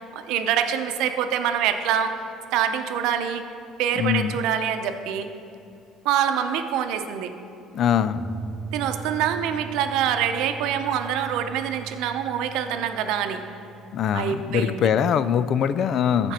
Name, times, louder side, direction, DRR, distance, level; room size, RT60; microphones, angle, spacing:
voice 1, 0.0-2.1 2.5-3.4 3.8-5.3 6.0-7.3 8.7-13.4 14.1-14.9 16.2-16.3, right 9 dB, 75° right, 7 dB, 0.7 m, -25 dB
voice 2, 4.0-4.4 7.7-8.2 13.9-16.3, left 8 dB, 55° left, 14 dB, 0.4 m, -22 dB
sound 1, 8.2-15.1, right 5 dB, 25° right, 0.4 m, -39 dB
14.5 x 5.2 x 4.3 m, 2.7 s
supercardioid pair, 100°, 0 cm